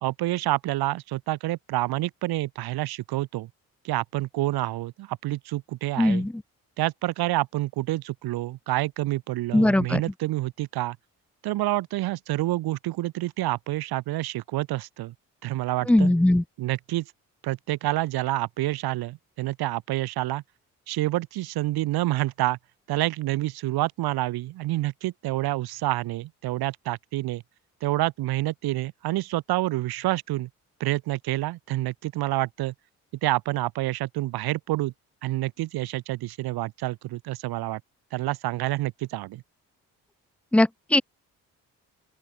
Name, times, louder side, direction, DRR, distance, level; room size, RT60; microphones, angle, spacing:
voice 1, 0.0-3.5 3.8-6.3 6.8-11.0 11.4-15.1 15.4-16.1 16.6-17.1 17.4-20.4 20.9-22.6 22.9-27.4 27.8-30.5 30.8-32.7 33.2-34.9 35.2-37.8 38.1-39.4, right 17 dB, 65° right, 0.9 m, -28 dB
voice 2, 6.0-6.3 9.5-10.0 15.9-16.4 40.5-41.0, left 1 dB, 5° left, 0.3 m, -20 dB
open air
hypercardioid pair, 50°, 40 cm